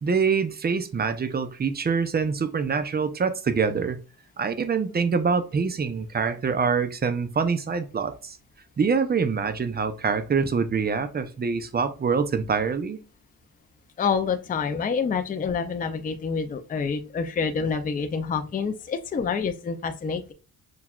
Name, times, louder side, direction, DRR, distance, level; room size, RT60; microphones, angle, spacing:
voice 1, 0.0-4.0 4.4-8.4 8.8-13.0, right 5 dB, 25° right, 0.5 m, -25 dB
voice 2, 14.0-20.3, left 5 dB, 25° left, 0.4 m, -27 dB
5.9 x 2.3 x 2.3 m
cardioid pair, 90°, 37 cm